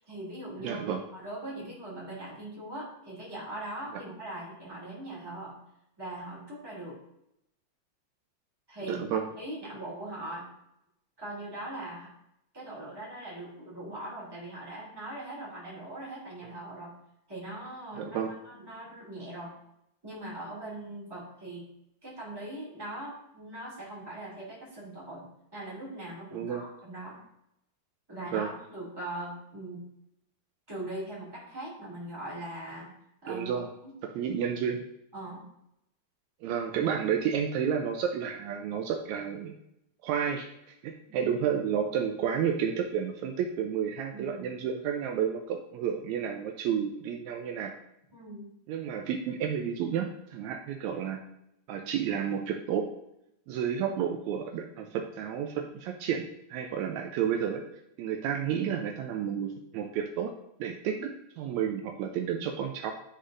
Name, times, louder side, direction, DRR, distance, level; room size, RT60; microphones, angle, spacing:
voice 1, 0.0-5.6 6.0-7.0 8.7-9.0 9.4-10.5 11.2-12.1 12.5-16.9 17.3-18.2 18.4-19.5 20.0-21.7 22.0-25.2 25.5-27.2 28.1-29.8 30.7-32.9 33.2-33.5 33.8-33.9 35.1-35.4 41.1-41.3 44.1-44.5 48.1-48.5, right 1 dB, 10° right, -7 dB, 1.9 m, -40 dB
voice 2, 0.6-1.0 8.9-9.3 16.4-16.5 18.0-18.3 26.3-26.7 28.3-28.5 33.3-33.7 34.0-34.8 36.4-39.6 40.0-47.8 48.7-51.2 51.7-52.9 53.5-57.6 58.0-60.3 60.6-62.9, right 8 dB, 80° right, 3 dB, 1.8 m, -31 dB
11.0 x 3.8 x 2.5 m, 0.81 s
omnidirectional pair, 3.4 m